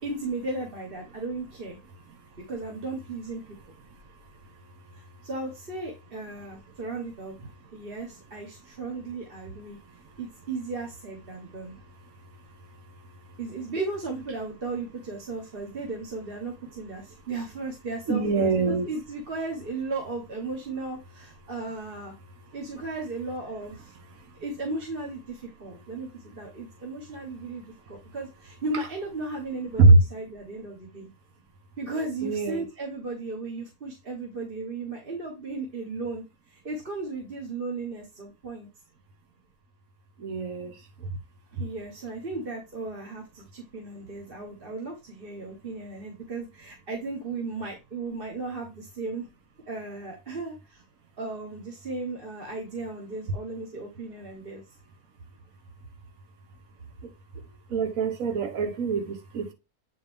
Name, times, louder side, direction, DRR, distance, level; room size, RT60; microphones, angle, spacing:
voice 1, 0.0-1.8 2.4-3.4 4.9-9.8 10.2-11.7 13.4-22.1 22.5-23.9 24.4-31.1 31.8-38.7 41.6-49.3 49.7-50.8 51.2-54.6, right 3 dB, 35° right, 1.5 m, -35 dB
voice 2, 18.1-18.9 29.8-30.0 32.2-32.7 40.2-40.7 57.7-59.5, right 3 dB, 60° right, 1.6 m, -22 dB
8.5 x 4.1 x 3.5 m
omnidirectional pair, 1.6 m